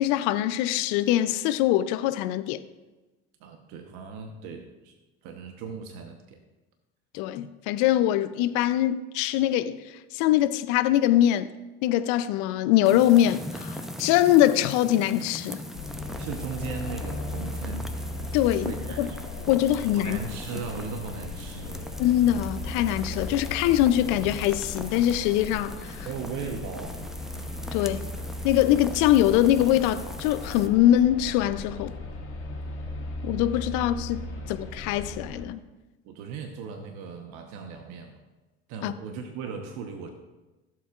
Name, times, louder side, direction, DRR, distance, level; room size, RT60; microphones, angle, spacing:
voice 1, 0.0-2.6 7.1-9.8 10.1-11.5 11.8-15.6 18.3-19.1 19.5-20.2 22.0-26.1 27.7-28.1 28.4-31.9 33.2-34.2 34.5-35.6 38.8-38.9, left 12 dB, 65° left, 0.6 m, -23 dB
voice 2, 3.4-4.9 5.2-6.4 16.2-17.9 18.6-19.3 19.9-21.9 26.0-27.2 34.4-34.5 36.0-38.2 38.7-40.1, right 5 dB, 65° right, 1.1 m, -37 dB
sound 1, 12.8-30.7, equal, ahead, 0.8 m, -41 dB
sound 2, 15.7-35.4, left 2 dB, 40° left, 2.2 m, -37 dB
15.0 x 7.7 x 2.5 m
hypercardioid pair, 70°, 32 cm